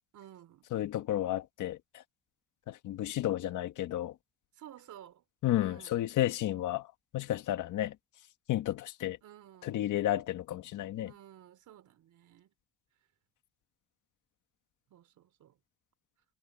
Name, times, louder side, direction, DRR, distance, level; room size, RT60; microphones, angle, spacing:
voice 1, 0.1-0.7 4.5-5.2 5.5-6.0 9.2-9.9 11.0-12.5 14.9-15.6, right 11 dB, 75° right, 3.5 m, -54 dB
voice 2, 0.7-2.0 2.7-4.1 5.4-8.0 8.5-9.2 9.6-11.1, left 13 dB, 80° left, 1.8 m, -32 dB
cardioid pair, 90°, 30 cm